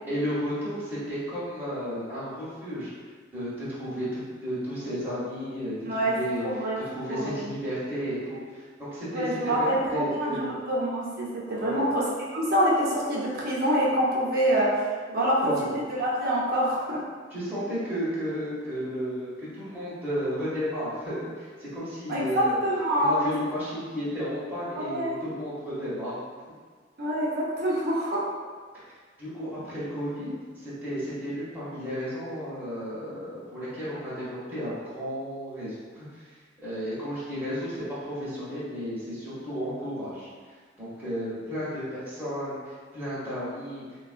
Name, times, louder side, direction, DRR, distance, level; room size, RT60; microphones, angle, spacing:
voice 1, 0.1-2.9 3.3-10.5 11.5-11.8 15.1-15.8 17.3-22.6 22.9-26.2 28.8-28.9 29.2-40.3 40.8-43.8, equal, 10° right, -12 dB, 0.9 m, -33 dB
voice 2, 5.9-6.2 6.4-6.8 7.1-7.4 9.1-9.8 10.2-12.0 12.3-14.7 15.1-17.0 22.1-23.3 24.8-25.2 27.0-28.2, equal, 55° right, -6 dB, 0.7 m, -26 dB
3.4 x 2.3 x 2.4 m, 1.5 s
head